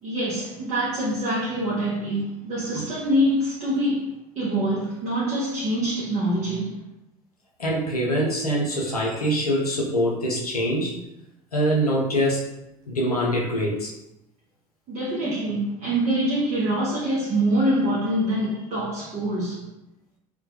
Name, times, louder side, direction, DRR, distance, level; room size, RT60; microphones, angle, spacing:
voice 1, 0.0-6.8 14.9-19.7, right 1 dB, 40° right, 0.6 m, -25 dB
voice 2, 7.6-11.0 11.5-12.4 12.9-13.9, equal, 85° left, 0.5 m, -24 dB
2.2 x 2.1 x 2.7 m
figure-of-eight pair, 65°, 19 cm